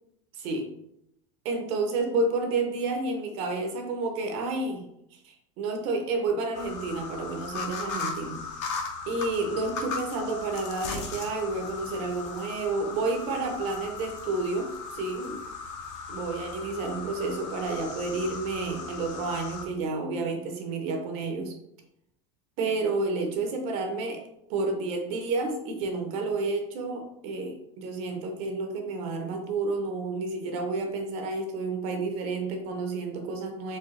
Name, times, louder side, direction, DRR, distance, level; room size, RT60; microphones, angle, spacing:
voice 1, 0.4-0.7 1.4-8.4 9.1-15.4 16.1-21.5 22.6-24.2 24.5-33.8, right 3 dB, 35° right, 4 dB, 0.6 m, -30 dB
sound 1, 6.5-19.7, left 4 dB, 60° left, 1.0 m, -37 dB
4.6 x 3.4 x 3.1 m, 0.78 s
supercardioid pair, 180°, 17 cm